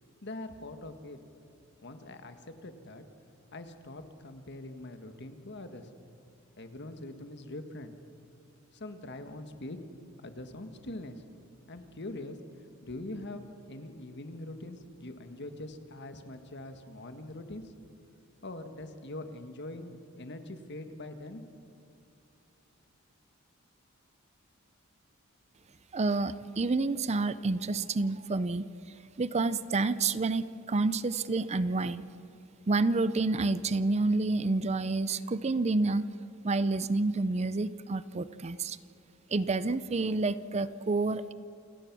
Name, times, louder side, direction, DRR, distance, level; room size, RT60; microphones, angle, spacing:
voice 1, 0.2-1.2 1.8-3.0 3.5-5.9 6.6-7.9 8.7-9.8 10.2-11.2 11.7-12.4 12.8-17.7 18.4-21.4, left 1 dB, 55° left, 8 dB, 1.6 m, -43 dB
voice 2, 25.9-28.7 29.2-32.0 32.7-36.1 36.4-38.8 39.3-41.3, right 3 dB, 30° right, 15 dB, 0.5 m, -29 dB
28.5 x 17.5 x 6.1 m, 2.8 s
head